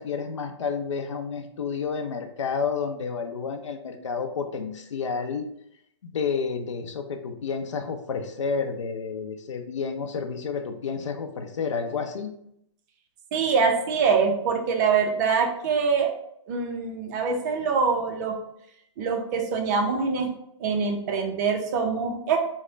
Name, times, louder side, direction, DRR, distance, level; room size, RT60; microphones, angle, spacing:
voice 1, 0.0-5.5 6.0-12.3, left 5 dB, 75° left, 6 dB, 0.6 m, -30 dB
voice 2, 13.3-16.1 16.5-18.4 19.0-20.3 20.6-22.4, right 5 dB, 35° right, 3 dB, 0.6 m, -24 dB
3.2 x 2.1 x 3.8 m, 0.74 s
hypercardioid pair, 135°, 16 cm